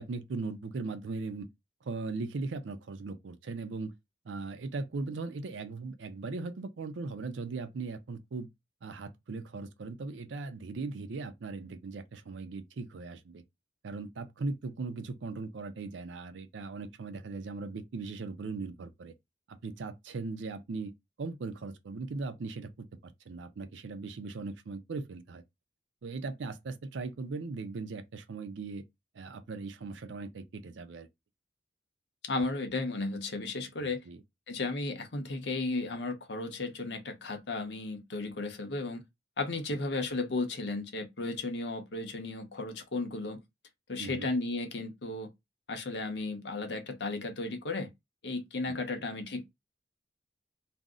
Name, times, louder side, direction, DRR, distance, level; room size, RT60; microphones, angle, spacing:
voice 1, 0.0-1.5 1.8-3.9 4.2-8.5 8.8-13.4 13.8-19.1 19.5-20.9 21.2-22.9 23.3-25.4 26.0-28.8 29.1-31.1 33.8-34.2 44.0-44.3 48.7-49.0, right 3 dB, 90° right, 0.5 m, -39 dB
voice 2, 32.3-34.0 34.5-39.0 39.4-43.4 43.9-45.3 45.7-47.9 48.2-49.5, left 3 dB, 70° left, 0.7 m, -34 dB
2.5 x 2.0 x 3.6 m
head